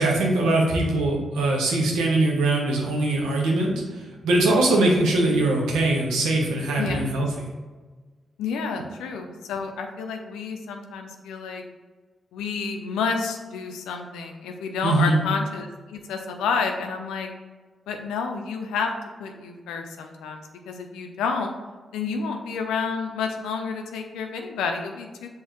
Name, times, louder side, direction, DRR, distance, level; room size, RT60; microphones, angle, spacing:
voice 1, 0.0-3.8 4.2-7.3 14.8-15.2, right 2 dB, 90° right, -1 dB, 0.9 m, -21 dB
voice 2, 6.8-7.1 8.4-11.6 12.3-17.3 17.9-18.9 19.2-21.5 21.9-25.3, left 5 dB, 90° left, 4 dB, 0.5 m, -30 dB
5.6 x 3.1 x 3.0 m, 1.3 s
supercardioid pair, 50°, 0 cm